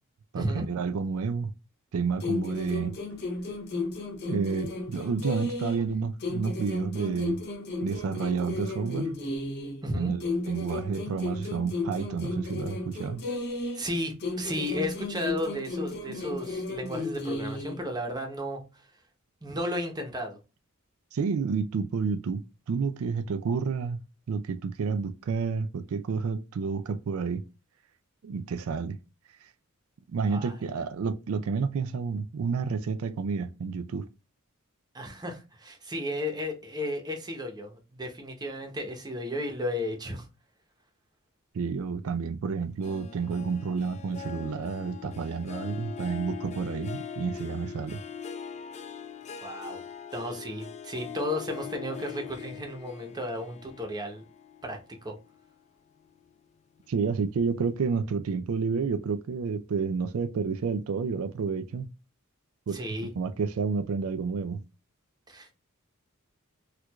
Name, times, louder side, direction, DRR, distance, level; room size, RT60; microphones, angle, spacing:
voice 1, 0.3-1.5 1.9-3.0 4.3-7.4 7.8-9.2 9.9-13.2 21.1-27.4 28.2-29.0 30.1-34.1 41.5-48.0 56.9-61.9 62.7-64.6, right 5 dB, 70° right, 0.4 m, -30 dB
sound 1, 2.2-5.9 6.2-9.8 10.2-13.9 14.2-17.8, left 2 dB, 50° left, 0.7 m, -34 dB
voice 2, 13.7-18.6 19.4-20.4 30.3-30.5 34.9-40.3 49.4-49.8 50.1-54.2 54.6-55.1 62.7-63.1 65.3-65.5, left 1 dB, 20° right, 0.8 m, -34 dB
Harp, 42.8-55.5 56.0-56.4 56.8-56.9, left 7 dB, 30° left, 0.3 m, -42 dB
4.4 x 2.4 x 2.3 m
head